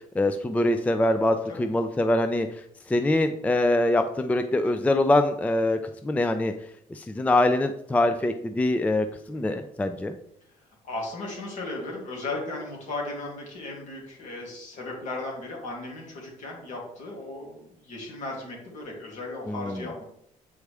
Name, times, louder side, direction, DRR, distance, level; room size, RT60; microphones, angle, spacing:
voice 1, 0.2-2.5 2.9-5.8 6.0-6.5 7.0-10.2 19.5-19.8, left 1 dB, 10° left, 8 dB, 0.4 m, -24 dB
voice 2, 10.8-20.0, left 2 dB, 60° left, -1 dB, 2.6 m, -36 dB
8.2 x 4.7 x 3.4 m, 0.72 s
cardioid pair, 120°, 14 cm